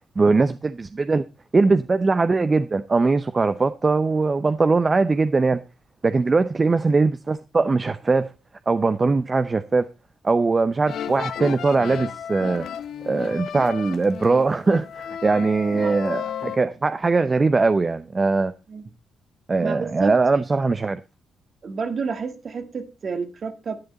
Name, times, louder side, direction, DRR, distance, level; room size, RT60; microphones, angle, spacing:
voice 1, 0.2-1.2 1.5-5.6 6.0-8.3 8.7-9.9 10.2-12.6 13.0-18.5 19.5-21.0, right 3 dB, 35° right, 0.6 m, -21 dB
sound 1, 10.9-16.6, left 8 dB, 70° left, 0.8 m, -33 dB
voice 2, 19.6-20.1 20.7-20.8 21.6-23.8, right 5 dB, 55° right, 1.7 m, -30 dB
10.5 x 9.5 x 4.1 m
supercardioid pair, 55°, 0 cm